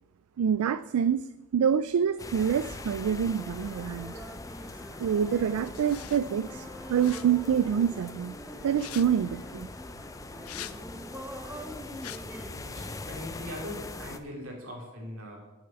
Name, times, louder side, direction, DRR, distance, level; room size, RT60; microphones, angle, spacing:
voice 1, 0.4-1.2 1.5-4.2 5.0-8.3 8.6-9.7, right 8 dB, 85° right, 14 dB, 0.3 m, -26 dB
sound 1, 2.2-14.2, left 2 dB, 15° left, 0.4 m, -42 dB
sound 2, 2.2-12.5, right 1 dB, 10° right, 0.9 m, -45 dB
sound 3, 5.7-6.2 6.9-7.2 8.7-9.1 10.4-10.8 12.0-12.2, left 12 dB, 80° left, 0.5 m, -42 dB
voice 2, 12.5-15.4, left 1 dB, 70° right, -1 dB, 3.3 m, -41 dB
8.9 x 6.9 x 8.0 m, 1.1 s
head